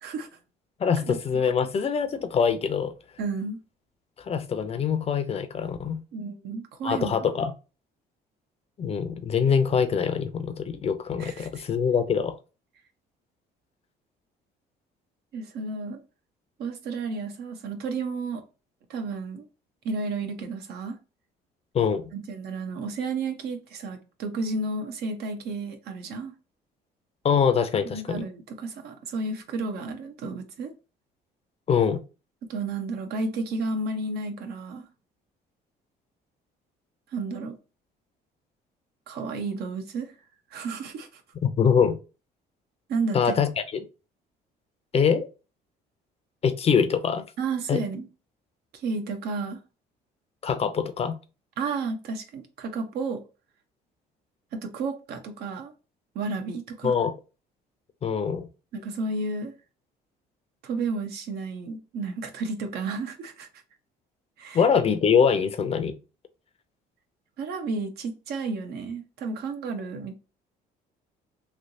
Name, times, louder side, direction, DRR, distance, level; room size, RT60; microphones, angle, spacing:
voice 1, 0.8-2.9 4.3-6.0 6.8-7.5 8.8-12.3 21.7-22.0 27.2-28.2 31.7-32.0 41.4-42.0 43.1-43.8 44.9-45.3 46.4-47.2 47.7-47.8 50.4-51.2 56.8-57.1 58.0-58.5 64.5-66.0, left 6 dB, 35° left, 0.5 m, -24 dB
voice 2, 3.2-3.6 6.1-7.1 11.2-11.6 15.3-16.0 16.6-18.4 18.9-19.4 19.8-21.0 22.1-26.3 27.8-30.7 32.5-34.9 37.1-37.6 39.1-40.1 40.5-41.2 42.9-43.4 47.4-48.1 48.8-49.6 51.6-53.2 54.5-55.7 56.1-56.9 58.7-59.5 60.6-63.5 64.4-64.6 67.4-70.2, right 3 dB, 70° right, 0.9 m, -32 dB
3.2 x 2.9 x 2.6 m
cardioid pair, 110°, 17 cm